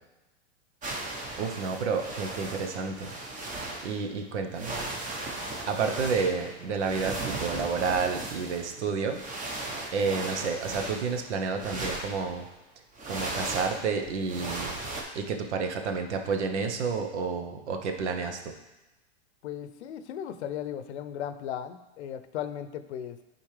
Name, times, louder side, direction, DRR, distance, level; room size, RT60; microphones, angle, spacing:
sound 1, 0.8-4.0 4.5-12.5 12.9-15.0, right 2 dB, 25° right, 1.1 m, -37 dB
voice 1, 1.4-3.1 3.8-4.8 5.7-9.2 9.9-12.5 13.1-14.9 15.1-18.5, right 5 dB, 85° right, 5 dB, 1.0 m, -30 dB
voice 2, 19.4-23.2, left 10 dB, 80° left, 11 dB, 0.7 m, -36 dB
8.8 x 4.2 x 3.3 m, 1.0 s
supercardioid pair, 130°, 33 cm